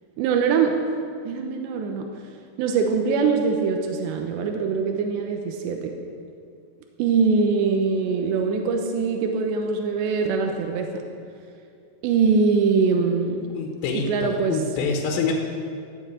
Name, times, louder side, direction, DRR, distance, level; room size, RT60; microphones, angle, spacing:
voice 1, 0.2-0.8 1.2-2.1 2.6-6.0 7.0-11.0 12.0-13.5 13.9-14.6, right 5 dB, 85° right, 3 dB, 3.2 m, -23 dB
voice 2, 13.5-15.3, left 5 dB, 80° left, 1 dB, 3.2 m, -26 dB
14.5 x 7.8 x 8.9 m, 2.4 s
omnidirectional pair, 5.0 m